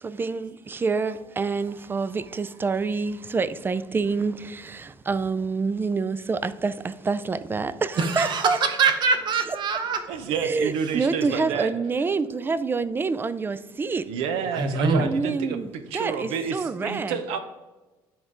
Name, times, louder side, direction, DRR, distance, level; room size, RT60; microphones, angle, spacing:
voice 1, 0.0-8.6 9.5-9.6 10.3-14.1 15.0-17.2, right 4 dB, 20° right, 0.3 m, -27 dB
voice 2, 8.0-10.0 10.8-11.0 14.5-15.1, right 4 dB, 50° right, 1.0 m, -24 dB
voice 3, 10.1-11.7 14.1-17.4, right 6 dB, 85° right, 0.7 m, -29 dB
10.0 x 3.7 x 3.7 m
cardioid pair, 100°, 10 cm